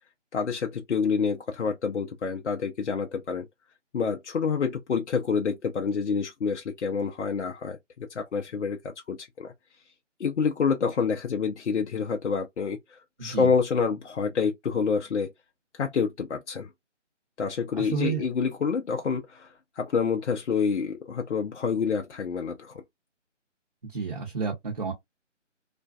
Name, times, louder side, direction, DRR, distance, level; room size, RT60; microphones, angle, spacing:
voice 1, 0.3-3.5 3.9-9.5 10.2-15.3 15.7-16.7 17.4-22.8, left 5 dB, 65° left, 0.6 m, -28 dB
voice 2, 13.2-13.5 17.8-18.2 23.8-24.9, right 5 dB, 40° right, 0.8 m, -30 dB
2.5 x 2.2 x 2.2 m
figure-of-eight pair, 165°, 37 cm